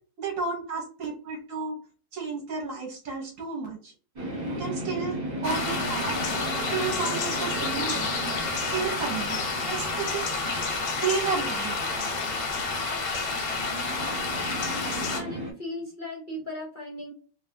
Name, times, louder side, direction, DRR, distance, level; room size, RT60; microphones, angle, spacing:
voice 1, 0.2-1.8 2.1-3.9 4.6-6.2 6.7-8.1 8.7-10.3 11.0-11.8 13.4-13.5, right 5 dB, 60° right, 1 dB, 1.0 m, -32 dB
sound 1, 4.2-15.5, right 1 dB, 30° right, 1.2 m, -36 dB
sound 2, 5.4-15.2, left 4 dB, 85° left, 1.5 m, -30 dB
voice 2, 15.0-17.1, left 1 dB, 40° left, -3 dB, 0.7 m, -37 dB
3.1 x 2.3 x 2.6 m, 0.38 s
omnidirectional pair, 1.8 m